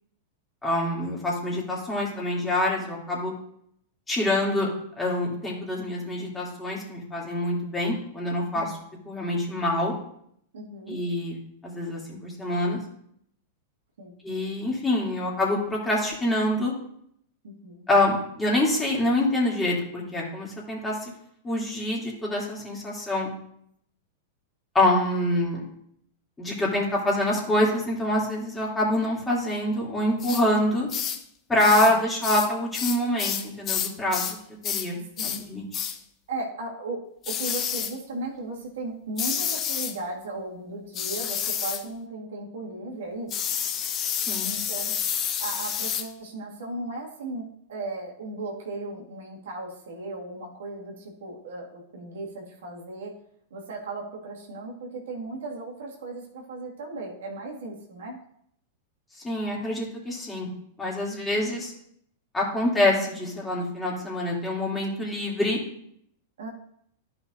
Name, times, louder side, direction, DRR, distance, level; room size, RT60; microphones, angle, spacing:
voice 1, 0.6-3.3 4.1-4.7 5.0-8.6 9.1-9.9 10.9-11.4 11.6-12.8 14.2-16.7 17.9-21.1 21.4-23.3 24.7-25.6 26.4-30.9 31.5-34.3 34.6-35.6 44.3-44.5 59.2-60.5 60.8-61.7 62.3-65.6, left 1 dB, 15° left, -4 dB, 3.0 m, -26 dB
voice 2, 10.5-11.0 14.0-14.1 17.4-17.9 31.6-32.0 35.2-35.4 36.3-37.0 37.3-43.4 44.4-45.0 45.4-53.1 53.5-58.2 61.5-61.6 66.4-66.5, right 2 dB, 70° right, -2 dB, 2.2 m, -36 dB
sound 1, 30.2-30.4 30.9-31.2 31.6-32.0 32.2-34.4 34.6-34.9 35.2-35.4 35.7-36.0 37.2-38.0 39.2-40.0 40.9-41.8 43.3-46.1, left 8 dB, 35° left, 0.9 m, -29 dB
14.0 x 5.7 x 2.7 m, 0.70 s
figure-of-eight pair, 95°, 0 cm